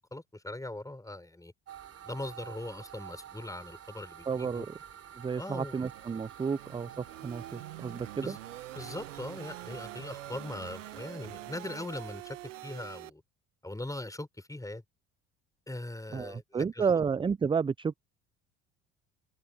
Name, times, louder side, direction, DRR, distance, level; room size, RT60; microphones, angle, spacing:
voice 1, 0.0-1.5 2.0-4.7 5.4-5.8 8.2-8.4 8.7-12.4 12.6-13.2 13.6-14.8 15.7-16.9, left 1 dB, 10° left, 5.4 m, -40 dB
sound 1, 1.7-11.1, right 9 dB, 40° right, 3.6 m, -49 dB
voice 2, 4.3-4.8 5.2-8.4 16.1-18.0, right 6 dB, 15° right, 0.4 m, -31 dB
sound 2, 5.9-13.1, right 16 dB, 85° right, 1.7 m, -45 dB
hypercardioid pair, 65°, 37 cm